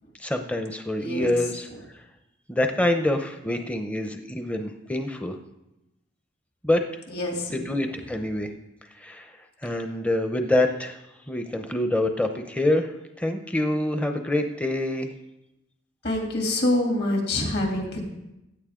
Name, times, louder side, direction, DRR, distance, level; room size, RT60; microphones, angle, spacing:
voice 1, 0.2-1.7 2.5-5.4 6.6-6.8 7.5-8.5 9.0-9.3 9.6-11.0 11.3-12.9 13.2-15.1, left 1 dB, 5° left, 5 dB, 0.6 m, -26 dB
voice 2, 7.1-7.7 16.0-18.0, left 1 dB, 55° left, 0 dB, 2.7 m, -26 dB
16.0 x 9.4 x 3.7 m, 0.91 s
head